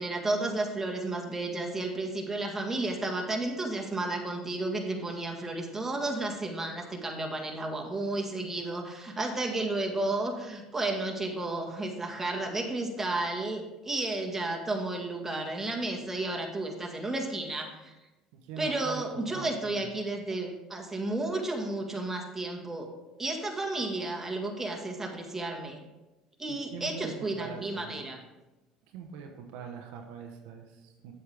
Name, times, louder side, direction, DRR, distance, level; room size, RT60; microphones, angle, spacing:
voice 1, 0.0-17.9 18.6-22.9 23.2-25.8 26.4-28.2, right 2 dB, 15° right, 1 dB, 1.7 m, -32 dB
voice 2, 18.3-19.9 26.5-28.1 28.9-31.1, right 5 dB, 75° right, 3 dB, 1.0 m, -43 dB
8.2 x 7.8 x 3.5 m, 1.1 s
supercardioid pair, 80°, 2 cm